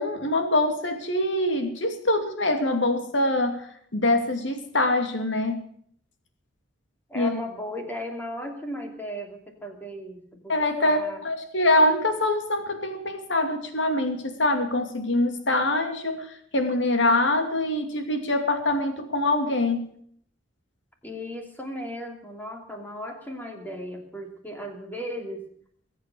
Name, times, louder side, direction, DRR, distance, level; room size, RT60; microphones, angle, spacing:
voice 1, 0.0-5.6 7.1-7.4 10.5-19.9, left 1 dB, 70° left, 7 dB, 2.7 m, -24 dB
voice 2, 7.1-10.5 10.8-11.2 21.0-25.5, equal, 10° left, 3 dB, 2.8 m, -36 dB
22.0 x 8.4 x 7.8 m, 0.62 s
head